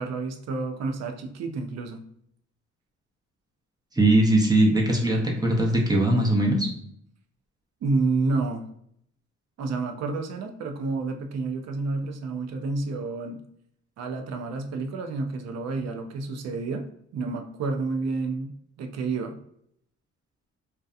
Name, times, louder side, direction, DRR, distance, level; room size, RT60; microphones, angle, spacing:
voice 1, 0.0-2.0 7.8-8.6 9.6-13.4 14.0-16.9 17.1-19.4, right 3 dB, 60° right, 5 dB, 0.5 m, -29 dB
voice 2, 4.0-6.7, right 1 dB, 15° right, 0 dB, 0.7 m, -20 dB
2.7 x 2.2 x 2.3 m, 0.70 s
cardioid pair, 90°, 30 cm